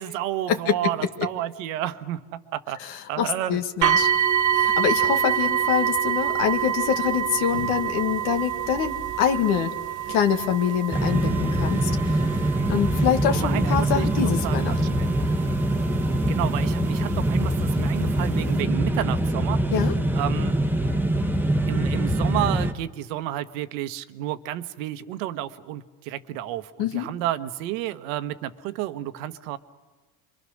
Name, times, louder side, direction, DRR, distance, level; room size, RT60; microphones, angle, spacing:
voice 1, 0.0-2.8 3.1-3.6 13.3-15.1 16.3-19.6 20.1-20.6 21.7-29.6, right 13 dB, 85° right, 12 dB, 1.2 m, -31 dB
voice 2, 2.8-4.1 4.5-9.7 10.1-12.3 12.7-15.0 19.7-19.9 26.8-27.1, left 8 dB, 75° left, 6 dB, 1.8 m, -25 dB
sound 1, 3.8-16.7 17.5-17.6 18.2-18.3, right 9 dB, 50° right, 1.6 m, -26 dB
sound 2, 10.9-22.7, right 1 dB, 5° right, 1.2 m, -23 dB
28.0 x 23.5 x 6.4 m, 1.3 s
supercardioid pair, 110°, 39 cm